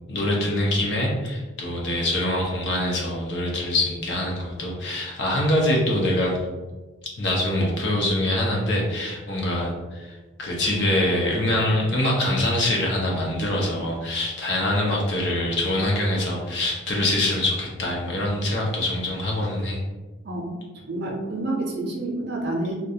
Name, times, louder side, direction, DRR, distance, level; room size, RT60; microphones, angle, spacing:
voice 1, 0.1-6.4 7.2-19.8, left 1 dB, 55° left, -3 dB, 0.6 m, -24 dB
voice 2, 20.9-22.7, right 2 dB, 50° right, -1 dB, 0.5 m, -28 dB
2.4 x 2.2 x 2.7 m, 1.2 s
head